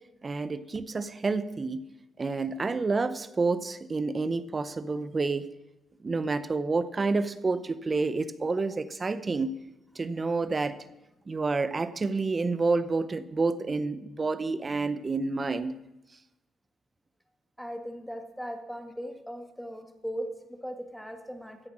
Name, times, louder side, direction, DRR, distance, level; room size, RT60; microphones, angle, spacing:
voice 1, 0.2-1.8 2.2-5.5 6.0-9.5 10.0-10.8 11.3-15.7, right 3 dB, 30° right, 14 dB, 0.7 m, -29 dB
voice 2, 17.6-21.7, equal, ahead, 5 dB, 1.7 m, -38 dB
14.0 x 7.9 x 6.2 m, 0.96 s
cardioid pair, 90°, 0 cm